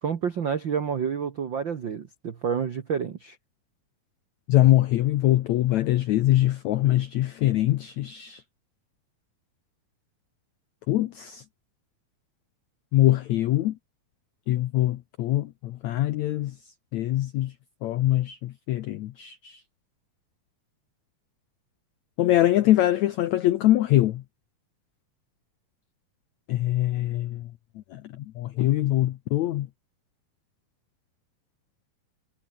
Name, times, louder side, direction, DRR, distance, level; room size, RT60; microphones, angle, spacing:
voice 1, 0.0-3.4, right 7 dB, 65° right, 1.1 m, -29 dB
voice 2, 4.5-8.4 10.9-11.4 12.9-13.8 14.5-16.5 16.9-17.5 17.8-19.6 22.2-24.2 26.5-27.5 27.9-29.7, left 14 dB, 80° left, 1.6 m, -23 dB
omnidirectional pair, 4.4 m